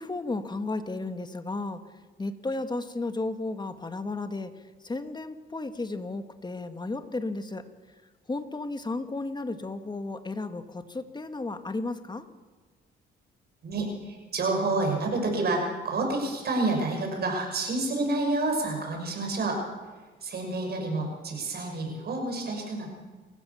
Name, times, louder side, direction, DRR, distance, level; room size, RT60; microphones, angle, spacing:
voice 1, 0.0-1.8 2.2-4.5 4.8-7.6 8.3-12.3, left 2 dB, 20° left, 9 dB, 1.8 m, -33 dB
voice 2, 13.6-19.6 20.2-22.9, right 2 dB, 55° right, 2 dB, 6.5 m, -29 dB
28.0 x 15.5 x 7.2 m, 1.3 s
cardioid pair, 90°, 20 cm